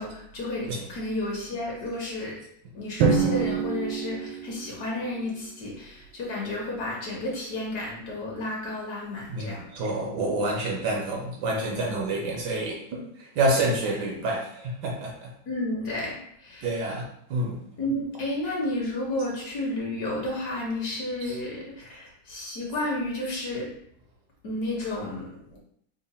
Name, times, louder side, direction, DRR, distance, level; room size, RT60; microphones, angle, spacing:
voice 1, 0.0-2.4 2.7-9.7 15.5-16.7 17.8-23.7 24.4-25.6, left 1 dB, 60° left, -3 dB, 1.2 m, -32 dB
Drum, 3.0-5.1, right 5 dB, 90° right, 1.4 m, -25 dB
voice 2, 9.3-15.3 16.6-17.6 21.2-21.4 21.9-22.0, right 1 dB, 70° right, -1 dB, 1.1 m, -28 dB
3.6 x 2.1 x 4.1 m, 0.72 s
omnidirectional pair, 2.1 m